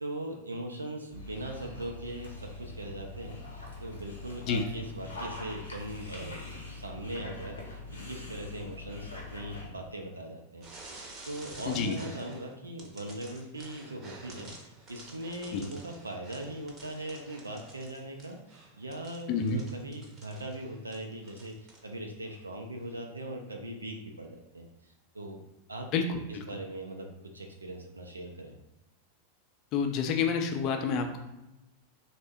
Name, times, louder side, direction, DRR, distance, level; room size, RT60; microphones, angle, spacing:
voice 1, 0.0-7.8 8.1-25.4 25.7-25.9 26.5-28.5, right 1 dB, 80° right, 3 dB, 0.3 m, -40 dB
Dog, 1.1-9.7, left 2 dB, 75° left, 0.7 m, -43 dB
sound 1, 10.6-12.5 12.8-21.9 22.2-22.4 23.2-23.3, right 2 dB, 30° right, 0.7 m, -50 dB
voice 2, 11.7-12.0 15.5-15.6 19.3-19.6 25.9-26.4 29.7-31.2, left 5 dB, 40° left, 5 dB, 0.4 m, -29 dB
3.3 x 2.0 x 3.4 m, 0.95 s
figure-of-eight pair, 90°, 0 cm